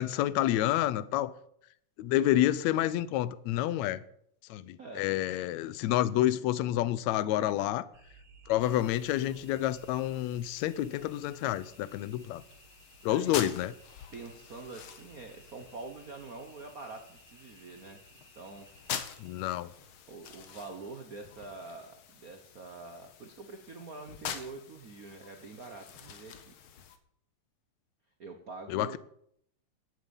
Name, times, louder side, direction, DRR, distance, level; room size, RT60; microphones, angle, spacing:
voice 1, 0.0-1.3 2.0-4.0 4.5-7.9 8.5-12.4 13.0-13.7 19.2-19.7 28.7-29.0, left 13 dB, 80° left, 1.9 m, -29 dB
sound 1, 7.9-20.8, right 3 dB, 60° right, 3.2 m, -59 dB
sound 2, 8.6-27.0, left 8 dB, 60° left, 1.6 m, -46 dB
voice 2, 13.1-13.4 14.1-18.0 18.3-18.7 20.1-26.5 28.2-29.0, right 3 dB, 80° right, 0.8 m, -45 dB
11.0 x 9.7 x 7.1 m
omnidirectional pair, 3.4 m